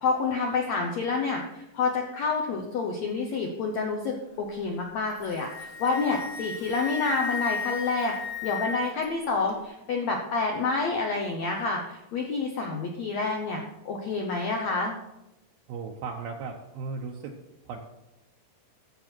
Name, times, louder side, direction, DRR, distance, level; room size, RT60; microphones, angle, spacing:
voice 1, 0.0-8.1 8.4-14.9, left 4 dB, 75° left, 2 dB, 1.6 m, -28 dB
Wind instrument woodwind instrument, 5.1-9.0, left 5 dB, 55° left, 2.9 m, -34 dB
voice 2, 15.7-17.3 17.7-17.8, right 4 dB, 75° right, 0 dB, 2.6 m, -36 dB
12.5 x 7.6 x 4.4 m, 0.93 s
omnidirectional pair, 4.5 m